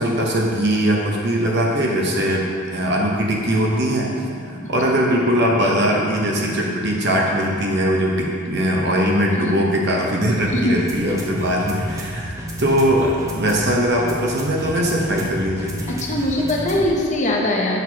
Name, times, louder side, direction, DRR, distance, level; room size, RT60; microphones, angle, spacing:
voice 1, 0.0-4.1 4.4-12.3 12.6-15.8, equal, 50° right, -1 dB, 0.8 m, -20 dB
sound 1, 4.0-17.1, equal, 15° right, 0.5 m, -33 dB
voice 2, 16.0-17.8, left 1 dB, 35° left, -2 dB, 0.6 m, -21 dB
6.7 x 6.2 x 2.8 m, 2.3 s
head